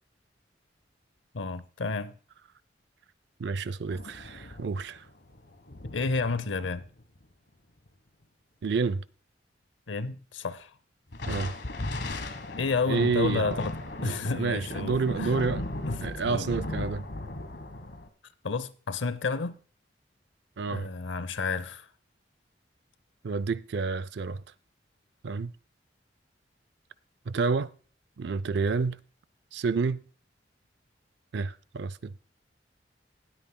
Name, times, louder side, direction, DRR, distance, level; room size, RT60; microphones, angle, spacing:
voice 1, 1.3-2.1 5.8-6.8 9.9-10.7 12.6-13.8 14.0-15.3 15.8-16.5 18.4-19.6 20.7-21.9, left 4 dB, 85° left, 0.7 m, -31 dB
voice 2, 3.4-5.0 8.6-9.0 11.3-11.5 12.9-13.6 14.0-15.7 16.0-17.1 20.6-20.9 23.2-24.4 25.2-25.5 27.3-27.7 28.2-29.0 29.5-30.0 31.3-32.1, right 4 dB, 65° right, 0.4 m, -29 dB
sound 1, 3.9-7.2 11.1-18.1, left 1 dB, 65° left, 1.2 m, -37 dB
19.0 x 9.0 x 2.2 m
head